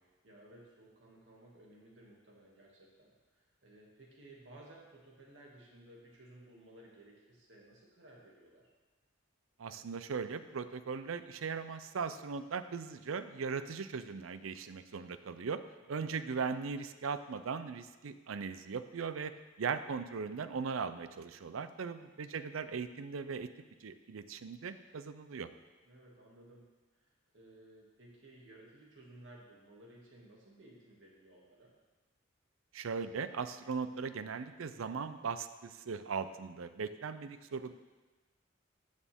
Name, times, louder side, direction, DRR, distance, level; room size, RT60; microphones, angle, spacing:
voice 1, 0.2-8.7 15.8-16.2 25.8-26.7 26.9-27.1 27.3-31.7 37.5-37.7, right 1 dB, 65° right, -3 dB, 2.3 m, -57 dB
voice 2, 9.6-15.6 15.9-19.3 19.6-23.5 23.8-25.5 32.7-37.7, right 5 dB, 90° right, 12 dB, 0.5 m, -39 dB
14.5 x 6.4 x 3.6 m, 1.3 s
head